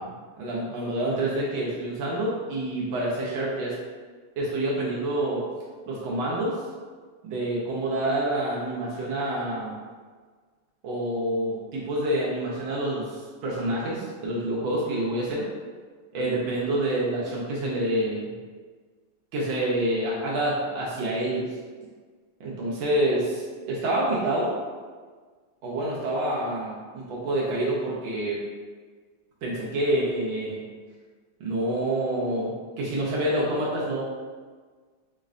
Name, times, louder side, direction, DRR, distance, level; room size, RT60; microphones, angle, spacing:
voice 1, 0.0-3.7 4.4-5.4 5.9-6.6 7.2-9.7 10.8-15.5 16.1-18.3 19.3-21.5 22.4-24.5 25.6-28.4 29.4-30.6 31.4-34.0, right 1 dB, 80° right, -5 dB, 1.4 m, -27 dB
5.3 x 2.1 x 2.4 m, 1.5 s
omnidirectional pair, 2.2 m